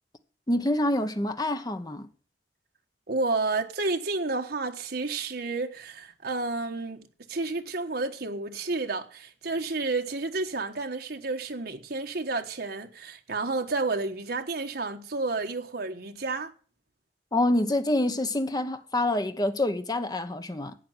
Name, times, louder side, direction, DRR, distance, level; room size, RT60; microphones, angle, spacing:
voice 1, 0.5-2.1 17.3-20.8, left 1 dB, 25° left, 1.1 m, -26 dB
voice 2, 3.1-16.5, right 3 dB, 60° right, 1.3 m, -31 dB
11.5 x 8.6 x 7.9 m
head